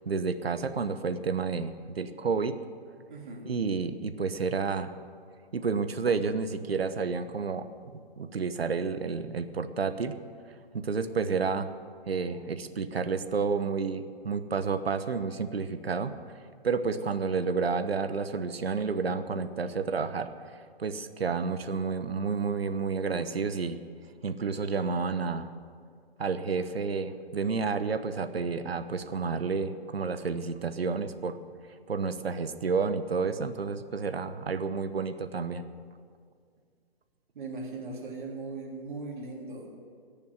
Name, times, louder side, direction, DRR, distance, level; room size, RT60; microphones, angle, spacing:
voice 1, 0.0-2.6 3.4-4.9 5.5-10.2 10.7-11.7 12.1-23.8 24.2-25.5 26.2-31.4 31.9-35.6, right 5 dB, 75° right, 10 dB, 1.1 m, -30 dB
voice 2, 3.1-3.5 37.3-39.7, right 3 dB, 50° right, -1 dB, 3.3 m, -39 dB
17.5 x 7.1 x 9.2 m, 2.1 s
figure-of-eight pair, 135°, 31 cm